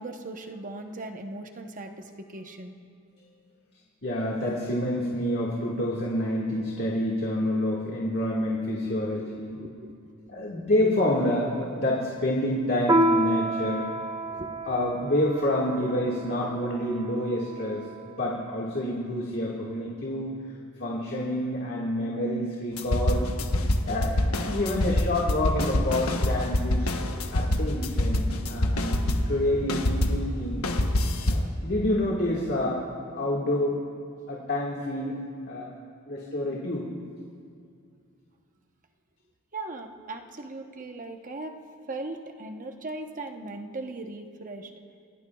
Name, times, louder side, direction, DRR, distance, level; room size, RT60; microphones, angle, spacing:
voice 1, 0.0-2.7 9.1-10.5 14.3-14.5 39.5-41.5 41.9-44.7, right 2 dB, 40° right, 4 dB, 1.0 m, -39 dB
voice 2, 4.0-9.6 10.3-13.8 14.6-20.3 20.8-23.3 23.8-26.9 27.3-30.7 31.3-32.8 33.1-33.8 34.3-35.2 35.4-35.7 36.1-36.9, left 1 dB, 50° left, -4 dB, 1.8 m, -28 dB
Piano, 12.9-17.8, right 1 dB, 20° right, 0.6 m, -29 dB
sound 1, 22.8-29.4 29.7-31.5, left 1 dB, 85° left, 1.1 m, -26 dB
28.5 x 17.5 x 2.4 m, 2.3 s
head